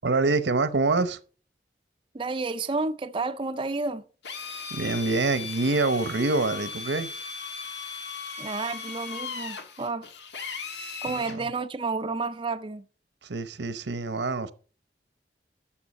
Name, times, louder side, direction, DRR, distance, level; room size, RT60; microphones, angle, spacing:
voice 1, 0.0-1.2 4.7-7.1 11.1-11.5 13.2-14.5, right 3 dB, 85° right, 0.9 m, -26 dB
voice 2, 2.1-4.0 8.4-10.1 11.0-12.9, right 3 dB, 30° right, 0.4 m, -31 dB
Drill, 4.2-11.4, left 5 dB, 85° left, 1.6 m, -37 dB
12.0 x 7.1 x 4.2 m
head